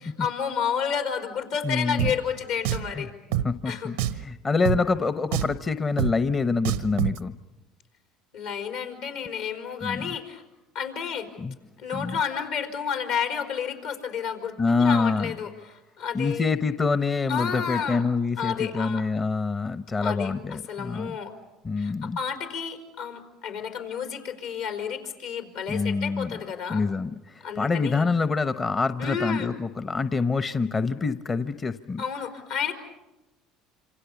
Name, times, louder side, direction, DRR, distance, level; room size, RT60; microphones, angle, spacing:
voice 1, 0.0-3.1 3.6-3.9 8.3-10.4 10.7-11.3 11.8-16.5 17.3-18.0 18.4-19.0 20.0-21.4 21.8-26.8 27.4-28.1 29.0-29.5 32.0-32.7, left 7 dB, 80° left, 5 dB, 4.6 m, -31 dB
voice 2, 1.6-2.1 2.9-3.1 3.4-7.3 9.8-10.1 11.4-11.6 11.9-12.2 14.6-15.3 16.1-21.2 21.6-22.2 25.7-26.4 26.7-32.0, left 4 dB, 30° left, 12 dB, 0.8 m, -26 dB
Drum, 2.0-2.1 2.6-2.9 3.3-3.5 4.0-4.2 4.6-4.8 5.3-5.6 6.0-6.1 6.6-7.2, right 12 dB, 90° right, 0.9 m, -26 dB
27.0 x 26.5 x 7.1 m, 1.0 s
supercardioid pair, 85°, 0 cm